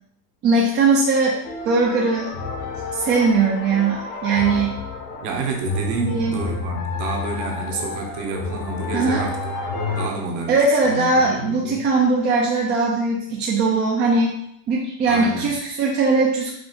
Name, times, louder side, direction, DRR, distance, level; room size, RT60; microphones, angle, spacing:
voice 1, 0.4-1.4 1.6-2.3 2.9-4.7 6.0-6.4 8.9-9.2 10.5-14.4 14.7-16.5, right 3 dB, 25° right, -3 dB, 0.4 m, -20 dB
sound 1, 1.4-10.1, left 3 dB, 75° left, 1.5 m, -29 dB
voice 2, 5.2-9.4 9.9-11.8 15.1-15.6, right 3 dB, 40° right, 1 dB, 0.9 m, -29 dB
4.9 x 2.4 x 3.9 m, 0.72 s
supercardioid pair, 150°, 47 cm